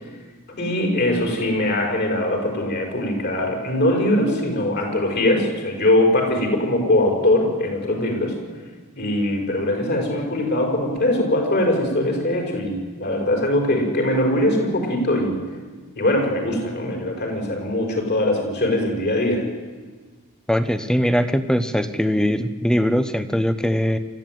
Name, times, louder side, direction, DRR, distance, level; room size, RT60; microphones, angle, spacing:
voice 1, 0.6-8.3 9.0-15.4 16.0-19.4, left 1 dB, 50° left, 2 dB, 5.5 m, -21 dB
voice 2, 20.5-24.0, equal, 5° left, 11 dB, 1.0 m, -21 dB
27.5 x 13.5 x 9.3 m, 1.4 s
head